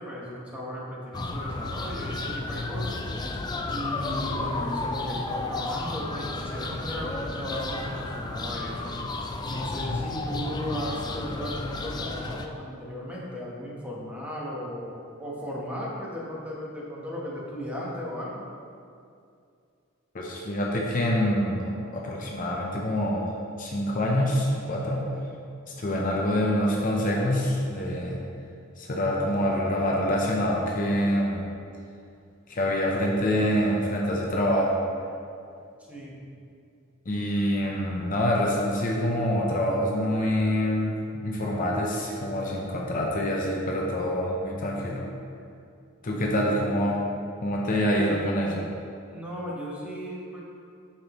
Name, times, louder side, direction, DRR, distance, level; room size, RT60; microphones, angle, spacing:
voice 1, 0.0-3.0 3.7-9.2 9.5-18.5 35.9-36.2 46.0-47.1 47.9-48.6 49.1-50.4, equal, 5° right, -5 dB, 1.1 m, -36 dB
sound 1, 1.1-12.5, left 3 dB, 20° left, 0.3 m, -32 dB
voice 2, 20.1-23.3 23.6-25.0 25.8-28.2 28.8-31.5 32.5-34.8 37.1-45.1 46.0-47.0 47.4-48.6, equal, 40° left, -2 dB, 0.7 m, -26 dB
8.4 x 5.8 x 3.0 m, 2.4 s
head